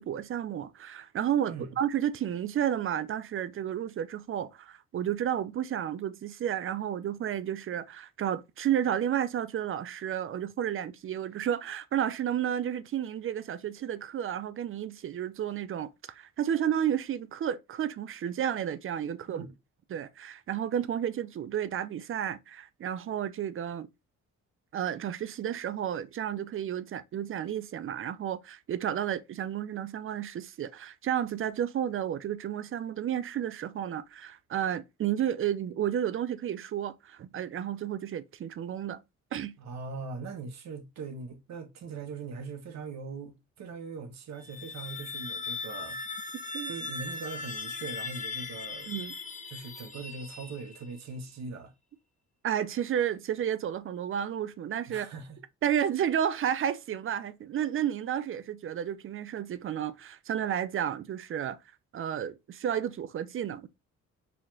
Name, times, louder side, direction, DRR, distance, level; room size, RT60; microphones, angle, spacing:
voice 1, 0.0-19.5 19.9-23.9 24.7-39.0 39.3-39.5 46.5-46.7 48.9-49.1 52.4-55.1 55.6-61.6 61.9-63.7, right 10 dB, 45° right, 0.5 m, -32 dB
voice 2, 39.6-46.0 46.6-49.0 49.5-51.7 54.9-55.4, right 4 dB, 65° right, 1.0 m, -41 dB
sound 1, 44.3-51.0, left 4 dB, 25° left, 0.7 m, -39 dB
4.1 x 2.9 x 2.6 m
cardioid pair, 90°, 30 cm